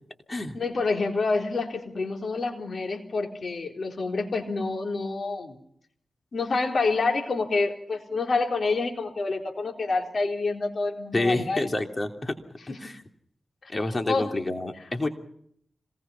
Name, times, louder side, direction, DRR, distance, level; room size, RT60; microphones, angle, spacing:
voice 1, 0.5-5.6 6.3-11.6 12.7-12.9 14.1-14.3, left 3 dB, 65° left, 4 dB, 4.0 m, -27 dB
voice 2, 11.1-12.3 12.7-13.0 13.7-15.1, left 2 dB, 35° left, 6 dB, 3.1 m, -28 dB
26.0 x 20.0 x 5.8 m, 0.69 s
cardioid pair, 55°, 0 cm